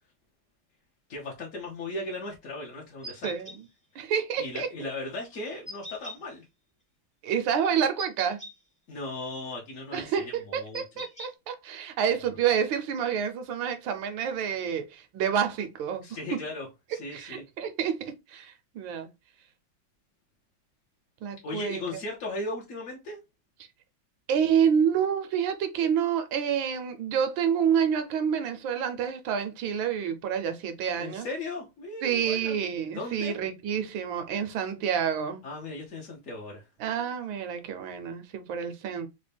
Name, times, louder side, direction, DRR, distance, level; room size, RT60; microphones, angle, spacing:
voice 1, 1.1-3.3 4.4-6.4 8.9-10.8 16.0-17.4 21.4-23.2 31.0-32.6 32.9-33.4 35.4-36.6, left 2 dB, 60° left, 0.9 m, -37 dB
sound 1, 3.0-3.6 5.7-6.2 8.0-8.5 10.7-11.3, equal, 10° left, 0.3 m, -40 dB
voice 2, 3.2-3.6 3.9-4.7 7.2-8.4 9.9-16.0 17.1-19.1 21.2-21.8 24.3-31.3 32.0-35.4 36.8-39.1, right 8 dB, 75° right, 1.3 m, -28 dB
4.0 x 2.1 x 3.3 m
omnidirectional pair, 2.2 m